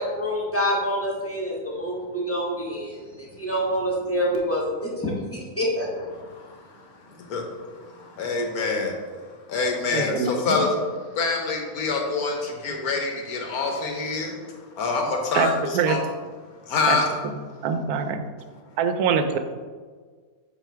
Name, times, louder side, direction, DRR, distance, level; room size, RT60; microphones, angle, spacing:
voice 1, 0.0-6.3, equal, 10° left, -4 dB, 1.0 m, -27 dB
voice 2, 7.2-9.0 9.5-10.9 11.1-14.4 14.8-16.0 16.6-17.1, left 4 dB, 80° left, 2 dB, 1.4 m, -26 dB
voice 3, 9.9-10.7 15.3-16.0 16.9-17.0 17.6-18.2 18.8-19.4, right 6 dB, 85° right, 8 dB, 1.1 m, -24 dB
7.6 x 3.0 x 4.5 m, 1.6 s
omnidirectional pair, 1.6 m